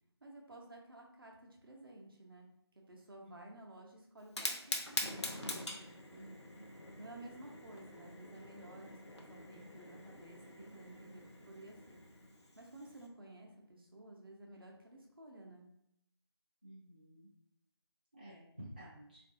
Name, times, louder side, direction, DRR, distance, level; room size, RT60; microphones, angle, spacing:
voice 1, 0.2-2.5 2.9-4.9 7.0-12.0 12.6-15.7, right 2 dB, 55° right, 0 dB, 0.8 m, -54 dB
Fire, 4.2-13.1, left 1 dB, 80° left, 0.7 m, -44 dB
voice 2, 6.1-6.7 16.6-17.3 18.1-19.2, right 1 dB, 20° right, -8 dB, 0.4 m, -53 dB
3.5 x 2.6 x 2.6 m, 0.75 s
figure-of-eight pair, 160°, 14 cm